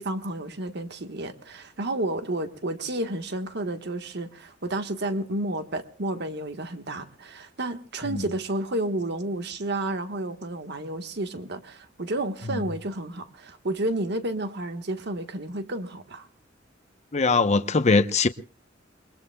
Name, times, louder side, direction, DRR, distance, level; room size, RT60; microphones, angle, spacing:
voice 1, 0.0-16.3, right 1 dB, 60° right, 1.4 m, -31 dB
voice 2, 17.1-18.3, left 3 dB, 35° left, 0.8 m, -21 dB
28.5 x 22.0 x 2.3 m
head